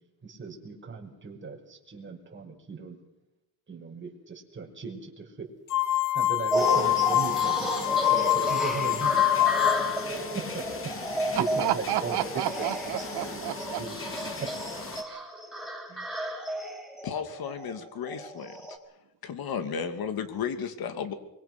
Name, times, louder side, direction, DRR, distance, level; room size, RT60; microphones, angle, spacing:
voice 1, 0.2-3.0 3.7-5.5 6.1-9.7 10.5-10.6 11.1-12.1 13.3-13.9 14.4-14.5 15.0-15.3 15.9-16.2, right 4 dB, 30° right, 0 dB, 5.7 m, -39 dB
sound 1, 5.7-10.1, left 13 dB, 55° left, 0.8 m, -25 dB
sound 2, 6.5-18.8, right 1 dB, ahead, 7.5 m, -33 dB
sound 3, 6.6-15.0, left 4 dB, 35° left, 2.8 m, -39 dB
voice 2, 11.6-13.8, right 14 dB, 85° right, 13 dB, 1.3 m, -30 dB
voice 3, 17.0-18.5 19.2-21.1, left 7 dB, 70° left, 8 dB, 2.7 m, -33 dB
24.0 x 23.5 x 6.2 m, 0.89 s
cardioid pair, 115°, 38 cm